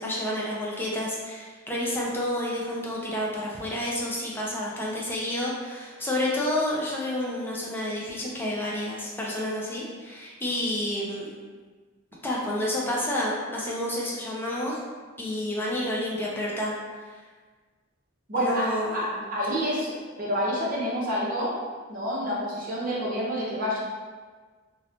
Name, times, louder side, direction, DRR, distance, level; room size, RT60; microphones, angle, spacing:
voice 1, 0.0-11.3 12.2-14.8 15.2-16.7 18.4-19.0, left 1 dB, 10° left, -4 dB, 0.4 m, -29 dB
voice 2, 18.3-19.9 20.2-21.6 21.9-23.8, equal, 40° right, -5 dB, 0.6 m, -28 dB
2.9 x 2.2 x 2.4 m, 1.4 s
head